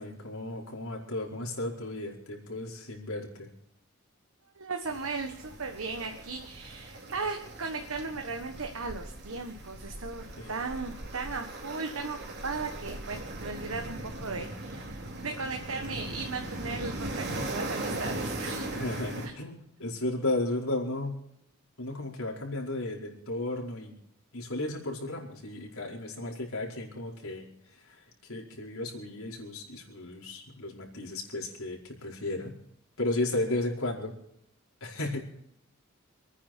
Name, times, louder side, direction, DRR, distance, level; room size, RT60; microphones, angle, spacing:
voice 1, 0.0-3.5 10.4-10.5 18.7-21.2 21.8-23.9 24.3-32.6 33.0-34.1 34.8-35.2, left 2 dB, 80° left, -1 dB, 4.9 m, -34 dB
voice 2, 4.5-18.8 19.2-19.3, right 4 dB, 70° right, 4 dB, 1.5 m, -37 dB
sound 1, 4.8-19.3, right 1 dB, 55° right, 3.5 m, -39 dB
28.0 x 9.9 x 4.5 m, 0.75 s
head